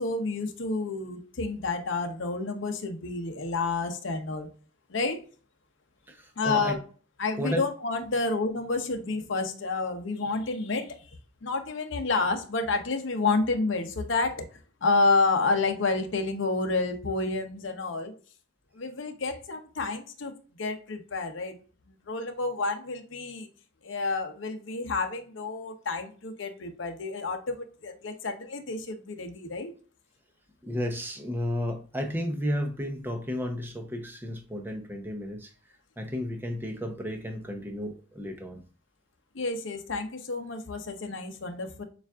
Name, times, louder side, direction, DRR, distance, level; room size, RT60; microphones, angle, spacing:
voice 1, 0.0-4.5 4.9-5.2 6.4-6.8 7.2-11.2 11.4-14.5 14.8-18.1 18.7-20.3 20.6-21.6 21.9-23.5 23.8-29.7 39.3-41.8, left 3 dB, 65° left, 0.7 m, -29 dB
voice 2, 6.1-6.8 7.4-7.6 30.6-35.5 36.0-38.6, equal, 10° right, 0.6 m, -33 dB
6.9 x 2.4 x 2.3 m
head